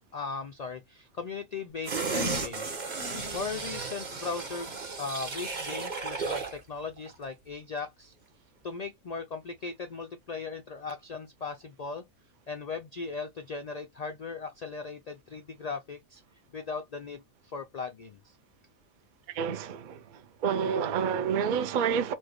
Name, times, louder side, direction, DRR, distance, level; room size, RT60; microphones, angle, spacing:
voice 1, 0.1-3.1 3.3-8.1 8.6-12.0 12.5-16.2 16.5-18.4, left 4 dB, 80° left, 0.3 m, -38 dB
sound 1, 1.8-6.6 7.0-7.1, right 3 dB, 40° right, 1.0 m, -34 dB
voice 2, 19.3-22.1, right 7 dB, 65° right, 0.5 m, -29 dB
4.4 x 2.2 x 3.0 m
omnidirectional pair, 1.3 m